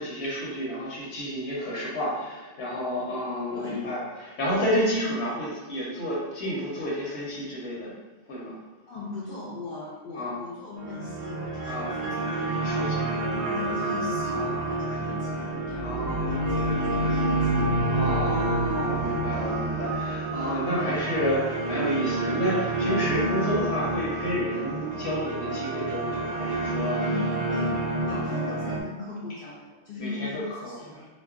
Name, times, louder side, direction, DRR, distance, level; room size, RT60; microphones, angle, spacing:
voice 1, 0.0-8.0 8.3-8.5 10.1-10.4 11.6-11.9 12.6-13.0 14.3-14.6 15.8-16.8 17.9-27.0 27.5-27.6 28.1-28.3 30.0-30.8, equal, 80° left, -5 dB, 1.0 m, -30 dB
voice 2, 3.5-3.9 8.9-18.1 27.0-31.1, left 3 dB, 60° left, -6 dB, 0.7 m, -39 dB
sound 1, 10.8-28.8, right 2 dB, 55° right, 0.4 m, -29 dB
sound 2, 15.2-20.5, equal, 80° right, 0.9 m, -30 dB
2.3 x 2.1 x 3.5 m, 1.2 s
omnidirectional pair, 1.1 m